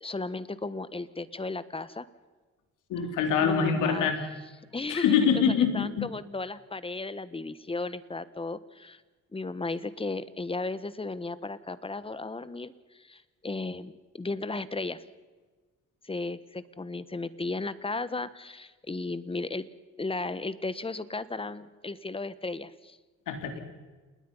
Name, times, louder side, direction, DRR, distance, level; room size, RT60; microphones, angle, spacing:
voice 1, 0.0-2.1 3.4-4.1 4.7-5.4 5.7-9.0 9.3-15.0 16.0-19.7 20.0-23.0, left 3 dB, 20° left, 15 dB, 1.3 m, -35 dB
voice 2, 2.9-4.2 4.9-6.1 23.3-23.6, left 7 dB, 90° left, 5 dB, 3.7 m, -25 dB
28.5 x 20.0 x 5.6 m, 1.3 s
cardioid pair, 90°, 30 cm